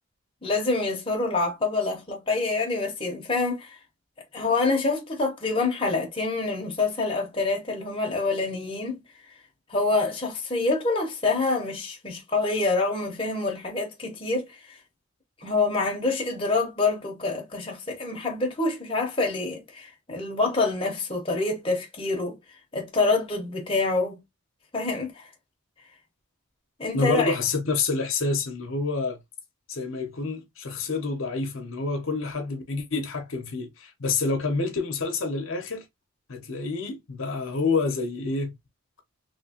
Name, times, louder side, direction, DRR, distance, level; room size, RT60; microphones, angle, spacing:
voice 1, 0.4-3.8 4.3-9.0 9.7-14.8 15.4-22.4 22.7-24.2 24.7-25.3 26.8-27.3, left 3 dB, 25° left, 0.9 m, -26 dB
voice 2, 26.9-29.2 29.7-35.8 36.3-38.5, left 4 dB, 65° left, 0.8 m, -28 dB
3.1 x 2.9 x 2.8 m
head